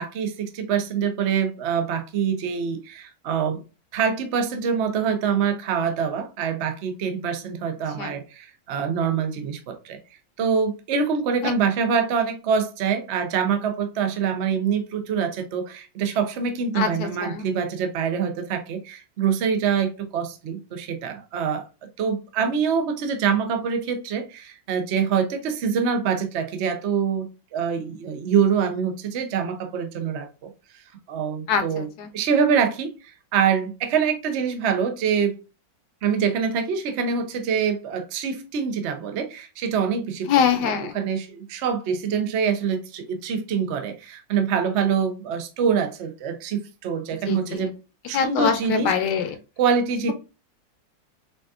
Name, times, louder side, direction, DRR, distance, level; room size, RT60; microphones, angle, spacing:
voice 1, 0.0-3.6 3.9-10.0 10.4-30.5 31.1-35.4 36.0-47.7 48.1-48.9 49.6-50.1, right 6 dB, 75° right, 0.6 m, -25 dB
voice 2, 16.7-17.5 31.5-32.1 40.3-40.9 47.3-47.6 48.1-49.4, left 7 dB, 70° left, 1.1 m, -24 dB
5.0 x 2.4 x 2.3 m
omnidirectional pair, 2.1 m